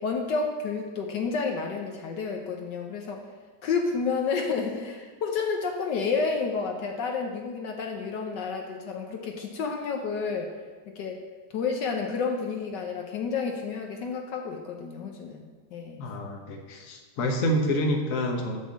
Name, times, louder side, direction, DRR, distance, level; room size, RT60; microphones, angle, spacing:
voice 1, 0.0-3.2 3.6-10.5 10.9-11.3 11.5-16.1, left 5 dB, 70° left, 2 dB, 1.4 m, -30 dB
voice 2, 16.0-18.6, equal, 50° left, 2 dB, 1.3 m, -28 dB
10.5 x 3.8 x 7.3 m, 1.5 s
omnidirectional pair, 2.0 m